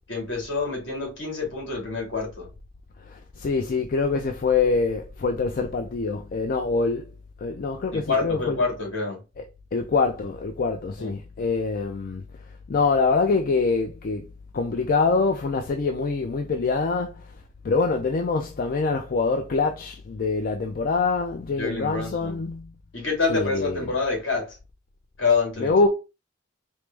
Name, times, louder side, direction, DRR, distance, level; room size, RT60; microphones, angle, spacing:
voice 1, 0.1-2.5 7.9-9.2 11.0-11.1 21.6-22.3 22.9-24.6 25.2-25.7, left 4 dB, 70° left, 1.9 m, -27 dB
voice 2, 3.4-7.1 7.4-8.6 9.4-9.5 9.7-12.2 12.7-14.2 14.5-17.1 17.6-22.6 23.3-23.9 25.6-25.9, left 4 dB, 50° left, 0.4 m, -24 dB
4.6 x 2.0 x 3.3 m
head